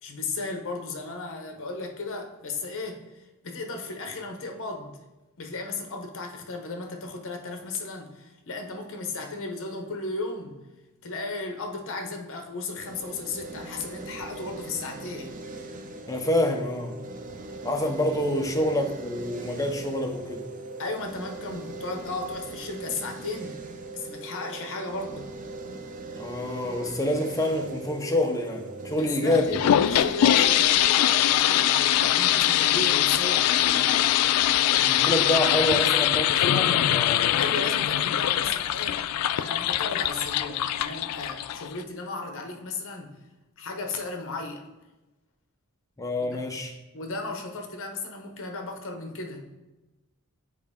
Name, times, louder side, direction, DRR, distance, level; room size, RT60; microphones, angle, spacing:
voice 1, 0.0-5.0 5.4-10.6 11.0-15.4 20.8-23.6 23.9-25.3 29.0-33.9 37.4-43.1 43.6-44.6 46.2-46.4 46.9-49.4, left 3 dB, 60° left, 5 dB, 0.8 m, -35 dB
sound 1, 12.7-31.8, right 2 dB, 35° right, 0.6 m, -40 dB
voice 2, 16.1-17.0 17.6-20.5 26.1-29.6 34.8-37.3 46.0-46.8, left 1 dB, 15° left, 3 dB, 0.7 m, -27 dB
sound 2, 29.3-41.8, left 12 dB, 90° left, 0.3 m, -23 dB
7.5 x 4.4 x 3.6 m, 1.1 s
head